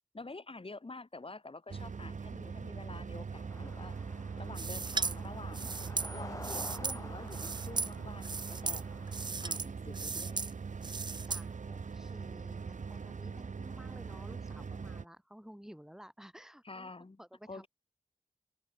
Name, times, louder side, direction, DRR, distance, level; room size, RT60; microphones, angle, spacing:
voice 1, 0.1-4.0 4.4-5.7 6.1-8.8 9.4-10.5 16.6-17.2 17.5-17.7, left 3 dB, 45° left, 6.1 m, -48 dB
sound 1, 1.7-15.0, right 5 dB, 75° right, 1.5 m, -42 dB
sound 2, 3.5-9.3, left 2 dB, 25° left, 1.8 m, -50 dB
sound 3, 4.6-5.1 5.5-7.0 7.3-7.9 8.2-8.8 9.1-9.7 9.9-10.5 10.8-11.4, right 4 dB, 35° right, 0.4 m, -36 dB
voice 2, 11.0-16.9 17.2-17.7, equal, 5° right, 5.0 m, -54 dB
open air
wide cardioid pair, 55°, 13 cm